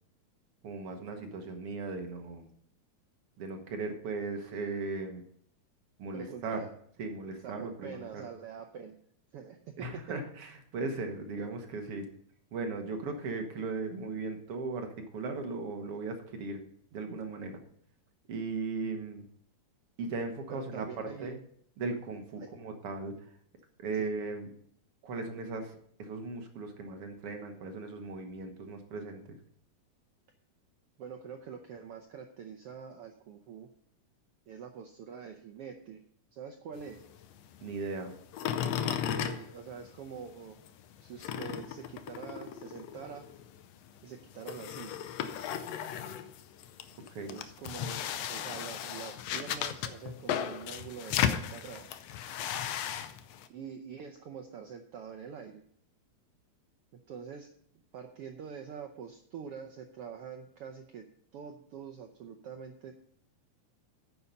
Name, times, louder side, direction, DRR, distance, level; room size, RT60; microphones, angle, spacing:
voice 1, 0.6-2.5 3.4-5.2 6.0-6.7 7.0-8.3 9.8-12.1 12.5-16.6 16.9-17.6 18.3-19.3 20.0-21.4 21.8-23.2 23.8-24.5 25.0-29.4 37.6-38.1 47.1-47.4, right 3 dB, 55° right, 4 dB, 1.9 m, -37 dB
voice 2, 6.1-6.7 7.4-8.9 9.3-10.0 20.5-21.4 22.4-22.5 24.0-24.1 31.0-33.7 34.5-36.0 36.3-37.0 38.9-40.6 41.0-43.3 44.0-45.1 47.2-51.9 53.5-55.6 57.1-57.5 57.9-61.1 61.3-62.9, right 7 dB, 75° right, 5 dB, 1.3 m, -45 dB
sound 1, 36.7-40.3 40.6-53.5, left 9 dB, 75° left, 1.6 m, -36 dB
9.6 x 7.1 x 5.3 m, 0.65 s
omnidirectional pair, 3.5 m